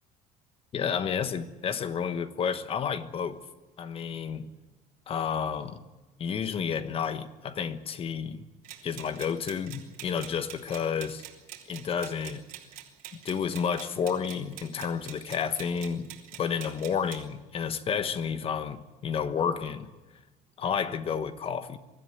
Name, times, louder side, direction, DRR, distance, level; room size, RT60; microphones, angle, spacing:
voice 1, 0.7-3.4 3.8-4.5 5.1-5.8 6.2-8.4 8.8-11.2 11.7-12.4 13.2-16.1 16.4-19.9 20.6-21.8, left 7 dB, 40° left, 1.2 m, -31 dB
sound 1, 8.6-17.2, right 12 dB, 70° right, 3.3 m, -46 dB
24.0 x 13.5 x 9.4 m
cardioid pair, 135°, 15 cm